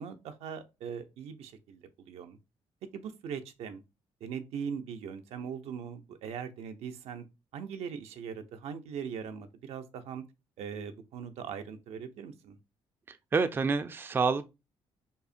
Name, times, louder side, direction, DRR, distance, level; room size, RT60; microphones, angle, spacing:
voice 1, 0.0-2.4 2.9-3.8 4.2-7.2 7.5-10.2 10.6-12.6, right 7 dB, 85° right, 0.6 m, -40 dB
voice 2, 13.1-14.5, right 4 dB, 20° right, 0.3 m, -28 dB
5.4 x 2.1 x 2.4 m
cardioid pair, 110°, 10 cm